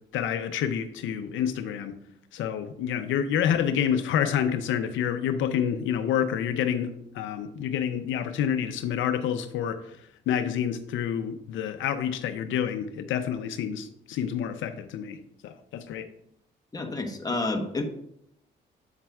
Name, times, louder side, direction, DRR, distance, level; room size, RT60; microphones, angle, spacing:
voice 1, 0.1-1.9 2.3-16.1, left 9 dB, 80° left, 9 dB, 0.6 m, -28 dB
voice 2, 16.7-17.8, left 2 dB, 20° left, 4 dB, 1.1 m, -29 dB
8.0 x 7.3 x 2.4 m, 0.76 s
cardioid pair, 90°, 20 cm